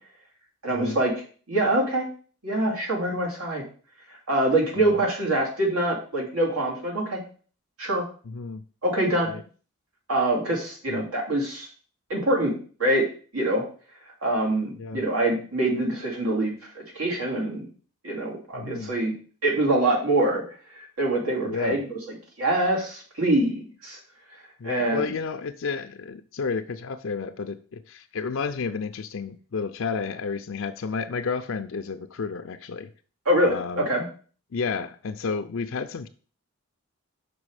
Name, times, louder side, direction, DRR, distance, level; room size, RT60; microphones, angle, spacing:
voice 1, 0.6-1.1 1.5-2.1 2.4-3.6 4.3-7.2 7.8-8.1 8.8-9.3 10.1-11.7 12.1-12.5 12.8-13.0 13.3-13.6 14.2-17.7 18.0-19.1 19.4-20.4 20.7-22.0 22.4-24.0 24.6-25.1 33.3-34.0, right 1 dB, 85° right, -2 dB, 2.6 m, -24 dB
voice 2, 8.2-8.6 9.3-9.4 10.9-11.0 14.8-15.0 18.5-18.9 21.4-21.8 24.6-32.9 33.5-33.9 34.5-36.1, left 5 dB, 65° left, 8 dB, 0.5 m, -31 dB
6.1 x 4.8 x 4.8 m, 0.41 s
head